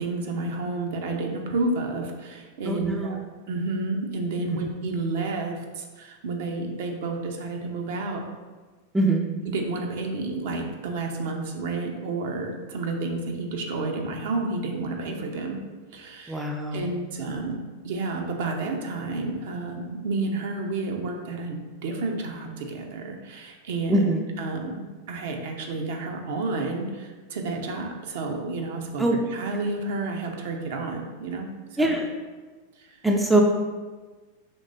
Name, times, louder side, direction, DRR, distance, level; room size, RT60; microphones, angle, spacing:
voice 1, 0.0-3.2 3.5-8.2 9.4-15.6 15.9-17.6 17.8-24.1 24.4-29.0 29.3-32.0 32.8-33.0, right 3 dB, 55° right, 2 dB, 0.6 m, -30 dB
voice 2, 2.7-3.2 4.5-4.7 8.9-9.3 16.3-16.9 23.9-24.3 29.0-29.2 31.8-32.1 33.0-33.4, right 2 dB, 5° right, 1 dB, 0.4 m, -23 dB
5.2 x 3.2 x 2.5 m, 1.3 s
figure-of-eight pair, 90°, 0 cm